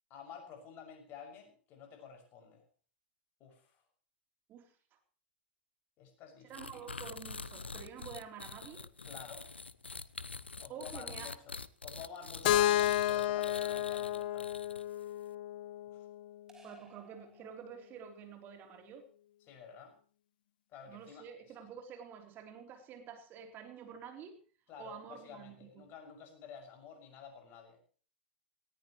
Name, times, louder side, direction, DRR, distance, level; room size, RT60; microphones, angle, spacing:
voice 1, 0.1-2.6 3.4-3.8 6.0-6.9 9.1-9.5 10.6-11.5 11.8-14.5 15.9-16.1 19.5-20.0 20.7-21.5 24.7-27.8, left 6 dB, 40° left, 4 dB, 6.3 m, -51 dB
sound 1, 6.5-15.0, left 4 dB, 85° left, 0.7 m, -46 dB
voice 2, 6.5-8.9 10.7-11.3 16.6-19.1 20.9-24.4 24.8-25.9, right 7 dB, 35° right, 5 dB, 3.4 m, -49 dB
Keyboard (musical), 12.4-16.4, left 13 dB, 55° left, 0.8 m, -32 dB
sound 2, 16.5-18.2, right 3 dB, 10° right, 5.0 m, -60 dB
18.5 x 18.0 x 3.1 m, 0.40 s
figure-of-eight pair, 95°, 6 cm